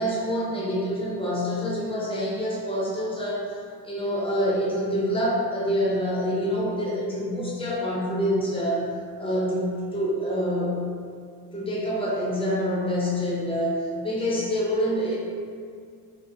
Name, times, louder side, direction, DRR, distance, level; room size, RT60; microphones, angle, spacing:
voice 1, 0.0-3.6 3.8-8.9 9.2-10.9 11.5-15.2, equal, 15° left, -5 dB, 0.6 m, -26 dB
2.8 x 2.7 x 2.6 m, 2.2 s
wide cardioid pair, 120°, 40 cm